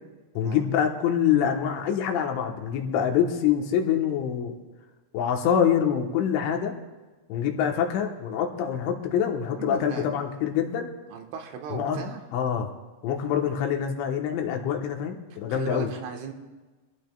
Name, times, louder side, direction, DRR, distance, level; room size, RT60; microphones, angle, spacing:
voice 1, 0.4-4.5 5.1-6.7 7.3-10.9 11.7-12.0 12.3-12.7 13.0-15.9, left 8 dB, 80° left, 3 dB, 3.5 m, -25 dB
voice 2, 9.6-10.1 11.1-12.2 15.5-16.3, right 5 dB, 80° right, 3 dB, 3.7 m, -36 dB
24.0 x 15.0 x 2.3 m, 1.2 s
omnidirectional pair, 5.5 m